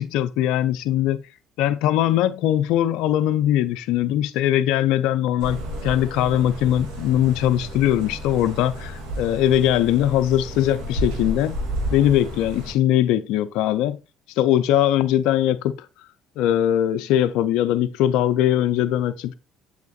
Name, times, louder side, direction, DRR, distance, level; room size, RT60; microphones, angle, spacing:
voice 1, 0.0-1.2 1.6-11.6 11.9-14.0 14.4-15.7 16.4-19.3, left 12 dB, 75° left, 0.5 m, -21 dB
sound 1, 5.4-12.7, equal, 85° right, 2.3 m, -32 dB
8.2 x 6.5 x 2.4 m
supercardioid pair, 70°, 0 cm